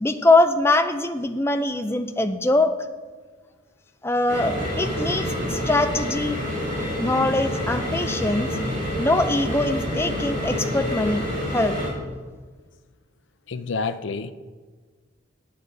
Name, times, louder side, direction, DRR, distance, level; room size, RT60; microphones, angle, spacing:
voice 1, 0.0-2.7 4.0-6.4 7.0-8.5 9.0-11.3 11.5-11.8, left 2 dB, 10° left, 8 dB, 0.5 m, -22 dB
sound 1, 4.3-11.9, equal, 40° right, 3.2 m, -28 dB
voice 2, 13.5-14.3, left 4 dB, 65° left, 11 dB, 0.5 m, -28 dB
9.6 x 8.6 x 4.0 m, 1.4 s
head